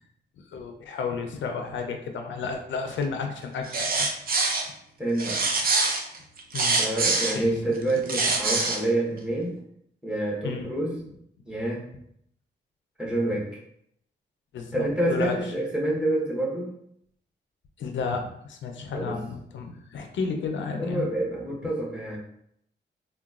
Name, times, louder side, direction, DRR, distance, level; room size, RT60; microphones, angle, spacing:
voice 1, 0.5-4.1 6.5-6.8 7.3-7.5 10.4-10.7 14.5-15.4 17.8-21.1, left 5 dB, 85° left, 4 dB, 0.5 m, -32 dB
sound 1, 3.6-4.7 5.2-7.4 7.9-8.8, right 3 dB, 55° right, 0.5 m, -24 dB
voice 2, 5.0-5.4 6.8-9.6 10.0-11.0 11.5-11.9 13.0-13.6 14.7-16.7 18.9-19.2 20.8-22.2, right 1 dB, 5° right, -4 dB, 0.9 m, -27 dB
3.8 x 2.2 x 2.3 m, 0.72 s
wide cardioid pair, 110°, 19 cm